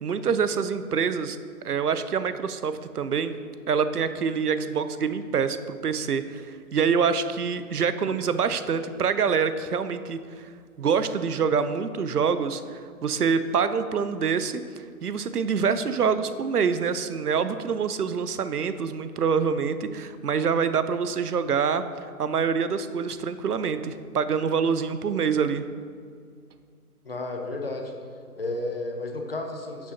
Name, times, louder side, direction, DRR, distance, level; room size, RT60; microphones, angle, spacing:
voice 1, 0.0-1.4 1.6-3.3 3.7-6.5 6.7-10.5 10.8-14.6 15.0-25.6, right 6 dB, 80° right, 12 dB, 0.7 m, -26 dB
voice 2, 27.1-27.9 28.4-29.9, left 2 dB, 40° left, 3 dB, 0.9 m, -32 dB
11.0 x 6.8 x 2.8 m, 2.1 s
hypercardioid pair, 170°, 45 cm